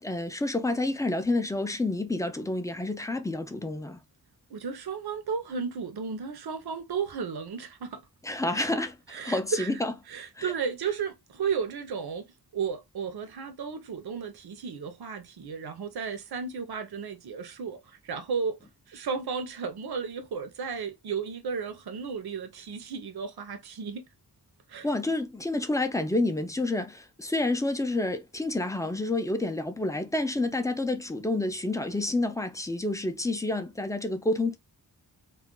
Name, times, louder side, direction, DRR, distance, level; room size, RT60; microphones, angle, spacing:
voice 1, 0.0-4.0 8.2-9.9 10.4-10.5 14.0-14.1 24.8-34.6, left 2 dB, 10° left, 0.4 m, -29 dB
voice 2, 4.5-8.0 8.5-8.6 9.1-9.7 10.1-12.3 12.5-18.6 18.9-24.1 24.7-24.9, right 6 dB, 70° right, 0.6 m, -34 dB
2.3 x 2.2 x 3.7 m
wide cardioid pair, 120°, 39 cm